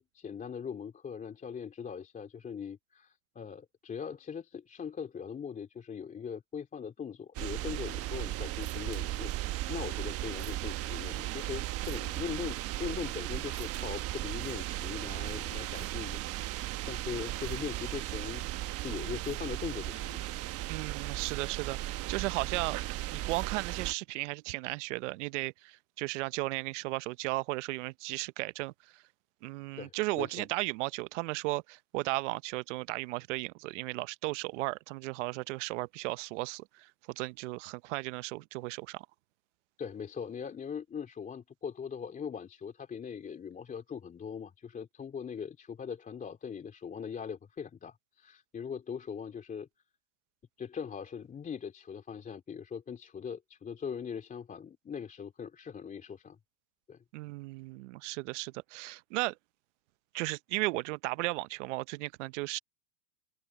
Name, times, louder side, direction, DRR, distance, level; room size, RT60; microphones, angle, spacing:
voice 1, 0.0-9.3 9.7-20.2 29.7-30.5 39.8-49.7 50.6-56.4 56.9-57.0, left 7 dB, 20° left, 2.9 m, -40 dB
sound 1, 7.3-23.9, right 16 dB, 30° right, 1.2 m, -36 dB
voice 2, 20.7-22.8 23.1-29.0 29.4-36.9 37.2-39.1 57.1-59.3 60.1-62.6, right 22 dB, 55° right, 0.8 m, -35 dB
open air
supercardioid pair, 135°, 45 cm